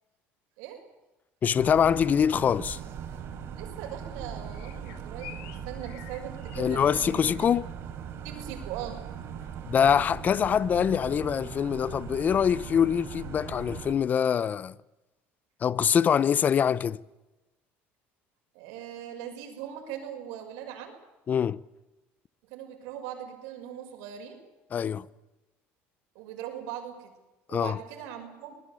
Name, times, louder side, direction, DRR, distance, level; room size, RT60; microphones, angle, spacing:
voice 1, 1.4-2.8 6.6-7.7 9.7-14.7 15.6-17.0 21.3-21.6 24.7-25.1 27.5-27.8, left 8 dB, 35° left, 0.8 m, -24 dB
sound 1, 1.5-13.9, right 8 dB, 50° right, 4.3 m, -40 dB
sound 2, 1.9-2.2 4.5-7.2, left 14 dB, 85° left, 2.0 m, -48 dB
voice 2, 3.6-7.5 8.2-9.0 18.5-21.0 22.5-24.4 26.1-27.1 27.5-28.5, right 10 dB, 80° right, 6.3 m, -40 dB
24.0 x 20.5 x 8.4 m
cardioid pair, 130°, 5 cm